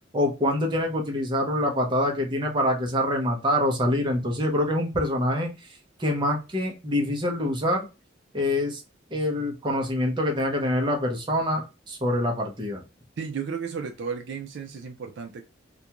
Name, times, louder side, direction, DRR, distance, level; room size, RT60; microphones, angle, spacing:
voice 1, 0.1-5.5 6.0-7.9 8.3-8.8 9.1-12.8, left 1 dB, 25° right, 0.7 m, -25 dB
voice 2, 13.2-15.4, right 6 dB, 65° right, 0.4 m, -33 dB
2.5 x 2.2 x 2.8 m
head